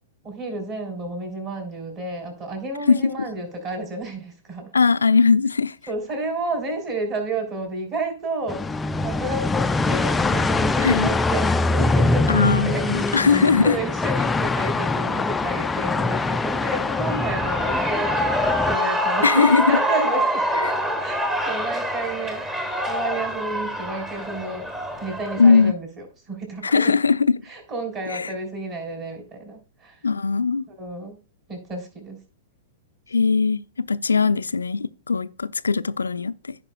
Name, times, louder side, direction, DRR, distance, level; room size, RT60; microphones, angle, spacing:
voice 1, 0.2-4.7 5.9-8.7 9.0-12.4 12.6-12.8 13.6-20.4 21.0-21.2 21.4-24.7 25.0-26.9 27.5-30.0 30.7-31.2 31.5-32.2 34.2-34.3, right 2 dB, 30° right, 3.8 m, -31 dB
voice 2, 4.7-5.8 10.8-11.1 12.3-13.7 19.2-19.7 20.6-20.7 25.4-25.7 26.6-27.4 28.1-28.3 30.0-30.6 33.1-36.6, left 5 dB, 75° left, 0.4 m, -19 dB
sound 1, 8.5-18.8, left 3 dB, 10° left, 0.3 m, -23 dB
Shout / Cheering, 16.8-25.7, equal, 15° right, 1.4 m, -25 dB
15.0 x 5.4 x 2.3 m
figure-of-eight pair, 105°, 0 cm